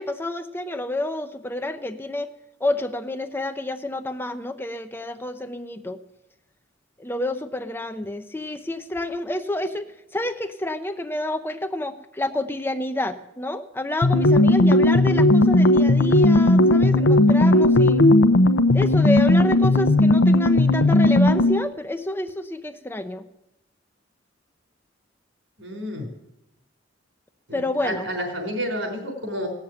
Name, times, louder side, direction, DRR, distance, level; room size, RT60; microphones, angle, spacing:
voice 1, 0.0-2.3 2.6-6.0 7.0-18.1 18.7-23.2 27.5-28.0, left 1 dB, 10° left, 9 dB, 0.6 m, -29 dB
sound 1, 14.0-21.7, left 1 dB, 75° left, 0.7 m, -16 dB
voice 2, 25.6-26.1 27.5-29.5, equal, 80° right, 3 dB, 4.2 m, -30 dB
17.0 x 7.3 x 9.0 m, 0.89 s
head